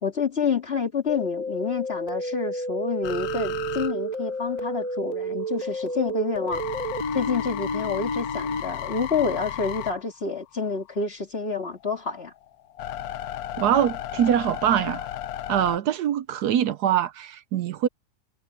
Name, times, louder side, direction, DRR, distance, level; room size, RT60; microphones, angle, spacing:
voice 1, 0.0-6.6 7.1-12.3, left 5 dB, 35° left, 2.4 m, -28 dB
sound 1, 1.1-8.6, right 1 dB, 25° right, 1.9 m, -31 dB
sound 2, 3.0-5.0 5.4-11.0 11.5-15.8, left 11 dB, 65° left, 1.1 m, -34 dB
voice 2, 13.6-15.1 15.5-17.9, right 10 dB, 70° right, 1.2 m, -23 dB
omnidirectional pair, 1.8 m